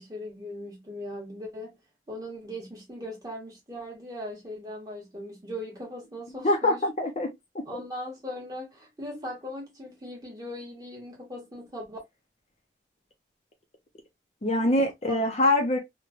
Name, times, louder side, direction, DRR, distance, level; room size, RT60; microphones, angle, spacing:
voice 1, 0.0-1.8 2.1-6.8 7.7-12.0 14.6-14.8 15.1-15.2, equal, 20° right, 1.1 m, -39 dB
voice 2, 6.4-7.3 14.4-15.8, left 1 dB, 35° left, 0.5 m, -24 dB
3.1 x 2.2 x 2.3 m
head